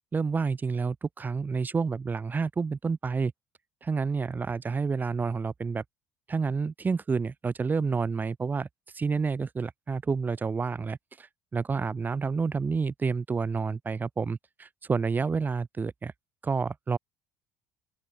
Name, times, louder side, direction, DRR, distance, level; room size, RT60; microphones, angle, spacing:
voice 1, 0.1-3.3 3.8-5.8 6.3-8.7 8.9-11.3 11.5-16.1 16.4-17.0, right 5 dB, 30° right, 5.6 m, -29 dB
open air
supercardioid pair, 80°, 6 cm